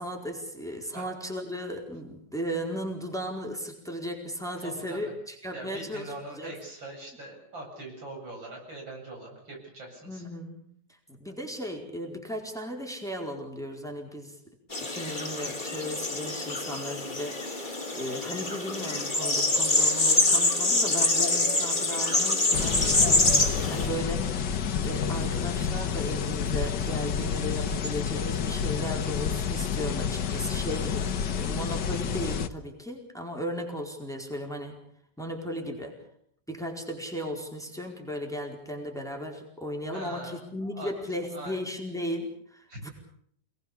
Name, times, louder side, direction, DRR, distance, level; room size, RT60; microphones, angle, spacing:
voice 1, 0.0-6.6 10.0-10.6 11.1-14.4 14.8-17.4 17.9-23.3 23.7-24.2 24.8-34.8 35.2-36.0 36.5-42.9, equal, ahead, 1 dB, 4.5 m, -36 dB
voice 2, 4.6-5.1 5.5-10.2 23.7-24.0 39.9-40.9 41.3-41.6 42.7-42.8, right 2 dB, 80° right, 1 dB, 8.9 m, -42 dB
sound 1, 14.7-23.9, left 2 dB, 25° left, 3.2 m, -25 dB
sound 2, 22.5-32.5, left 7 dB, 65° left, 1.8 m, -29 dB
28.5 x 20.0 x 7.0 m, 0.66 s
omnidirectional pair, 2.1 m